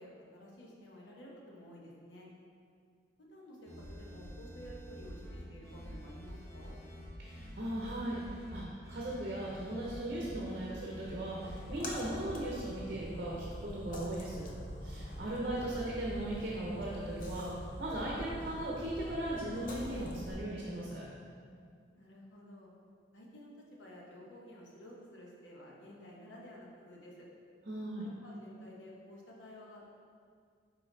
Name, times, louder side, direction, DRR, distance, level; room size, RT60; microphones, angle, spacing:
voice 1, 0.0-2.3 3.2-6.8 21.9-22.7 23.1-27.3 28.2-29.9, equal, 85° left, -3 dB, 1.1 m, -52 dB
sound 1, 3.6-12.3, equal, 20° left, 1.3 m, -47 dB
voice 2, 7.2-14.5 14.8-17.5 17.8-21.0 27.7-28.1, right 1 dB, 50° right, -4 dB, 0.8 m, -38 dB
Splash splatter, 11.4-20.3, equal, 45° left, 0.7 m, -44 dB
5.4 x 4.5 x 4.0 m, 2.2 s
head